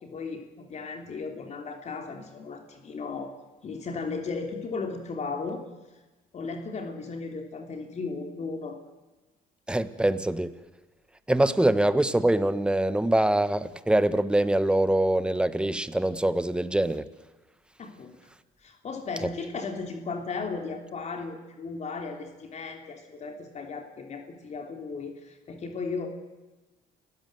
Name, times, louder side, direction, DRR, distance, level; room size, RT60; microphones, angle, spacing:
voice 1, 0.0-3.3 3.6-5.6 6.3-8.8 17.8-18.2 18.6-26.1, left 4 dB, 40° left, 4 dB, 3.1 m, -36 dB
voice 2, 9.7-10.5 11.3-17.0, right 1 dB, 5° right, 13 dB, 1.3 m, -24 dB
29.5 x 16.5 x 7.9 m, 1.2 s
cardioid pair, 110°, 17 cm